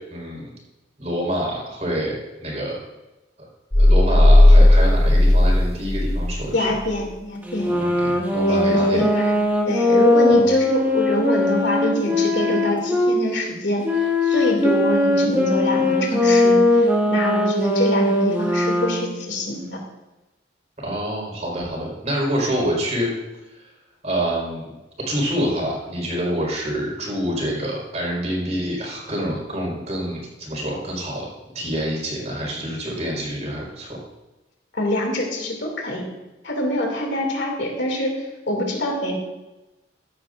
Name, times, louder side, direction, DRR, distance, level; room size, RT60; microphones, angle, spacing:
voice 1, 0.1-0.5 1.0-2.8 3.4-3.5 3.8-6.7 7.7-9.0 10.3-10.5 20.8-23.1 24.0-24.7 25.1-33.9, equal, 40° right, -3 dB, 4.4 m, -27 dB
sound 1, 3.7-6.4, left 1 dB, 35° left, 1.2 m, -13 dB
voice 2, 6.5-7.8 8.5-9.3 9.7-13.8 14.2-19.8 34.7-36.0 36.4-39.2, left 1 dB, 75° left, 1 dB, 2.5 m, -25 dB
sound 2, 7.4-13.1 13.8-19.2, left 1 dB, 10° right, 1.8 m, -20 dB
14.5 x 12.0 x 2.5 m, 1.0 s
head